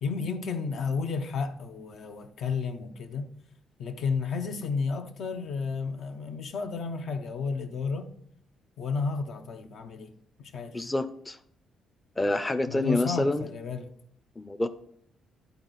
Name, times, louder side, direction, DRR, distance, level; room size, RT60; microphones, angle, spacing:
voice 1, 0.0-3.3 3.8-8.1 8.8-10.1 10.4-10.8 12.7-13.9, left 5 dB, 65° left, 0.7 m, -32 dB
voice 2, 10.7-11.4 12.2-13.4 14.4-14.7, left 2 dB, 15° left, 0.5 m, -27 dB
11.0 x 4.0 x 4.0 m
cardioid pair, 90°, 0 cm